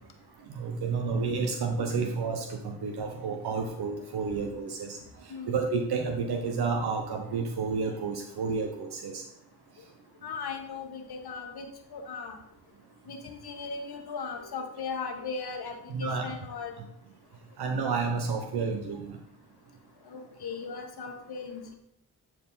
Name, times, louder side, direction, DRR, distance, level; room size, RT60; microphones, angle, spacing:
voice 1, 0.6-5.0 5.5-9.2 15.9-16.3 17.6-19.1, right 4 dB, 85° right, 4 dB, 0.8 m, -30 dB
voice 2, 10.2-11.6 11.9-12.4 13.1-16.7 20.1-21.7, left 5 dB, 80° left, 4 dB, 1.3 m, -37 dB
10.5 x 4.7 x 3.9 m, 0.80 s
cardioid pair, 55°, 38 cm